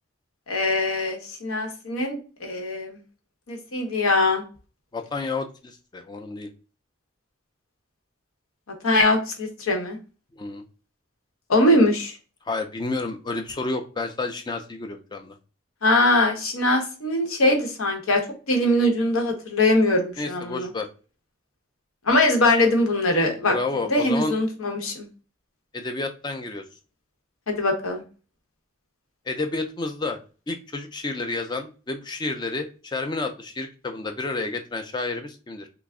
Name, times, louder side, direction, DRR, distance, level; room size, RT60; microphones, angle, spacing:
voice 1, 0.5-3.0 3.5-4.4 8.8-10.0 11.5-12.1 15.8-18.2 18.5-20.7 22.1-25.1 27.5-28.0, left 1 dB, 90° left, 2 dB, 0.9 m, -22 dB
voice 2, 4.9-6.5 10.3-10.6 12.5-15.4 20.2-20.9 23.4-24.3 25.7-26.6 29.3-30.2 30.5-35.7, left 3 dB, 20° left, 6 dB, 0.3 m, -30 dB
3.3 x 2.0 x 3.5 m, 0.35 s
head